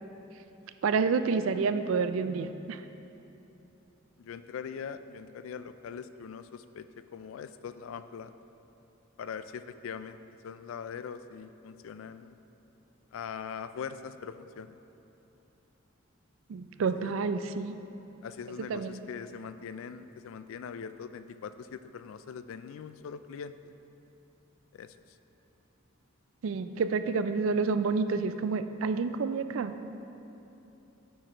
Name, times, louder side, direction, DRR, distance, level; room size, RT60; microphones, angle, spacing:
voice 1, 0.8-2.8 16.5-17.8 18.7-19.0 26.4-29.8, right 4 dB, 75° right, 10 dB, 0.4 m, -29 dB
voice 2, 4.2-6.9 7.1-8.3 9.2-10.2 10.4-12.4 13.1-14.8 16.9-17.1 18.2-23.7 24.7-24.9, left 6 dB, 75° left, 12 dB, 0.3 m, -42 dB
8.9 x 4.9 x 4.4 m, 3.0 s
head